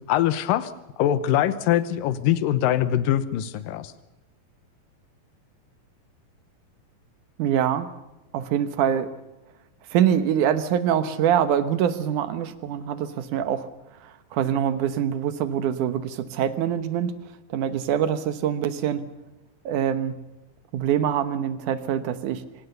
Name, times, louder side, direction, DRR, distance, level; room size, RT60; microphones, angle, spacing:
voice 1, 0.1-0.7 1.0-3.9, left 11 dB, 75° left, 14 dB, 2.6 m, -23 dB
voice 2, 7.4-7.9 8.3-9.1 9.9-13.7 14.0-17.1 17.5-19.0 19.7-20.2 20.7-22.4, right 9 dB, 65° right, 11 dB, 2.3 m, -24 dB
25.5 x 18.0 x 6.8 m, 0.99 s
omnidirectional pair, 4.2 m